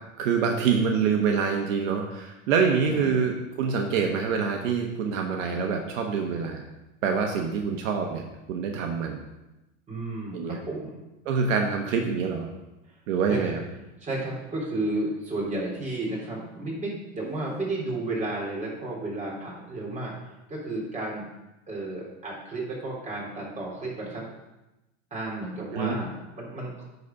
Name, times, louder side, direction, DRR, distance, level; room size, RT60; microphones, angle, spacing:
voice 1, 0.2-6.6 7.0-8.2 8.5-9.2 10.3-10.6 11.2-12.5 13.1-13.6 25.7-26.0, right 6 dB, 70° right, 3 dB, 1.2 m, -26 dB
voice 2, 9.9-11.0 13.3-13.4 14.0-20.1 20.5-21.3 21.7-24.2 25.1-26.8, right 2 dB, 20° right, -4 dB, 3.3 m, -32 dB
sound 1, 17.2-18.2, equal, 10° left, 2.8 m, -45 dB
9.4 x 4.1 x 5.7 m, 0.98 s
supercardioid pair, 125°, 40 cm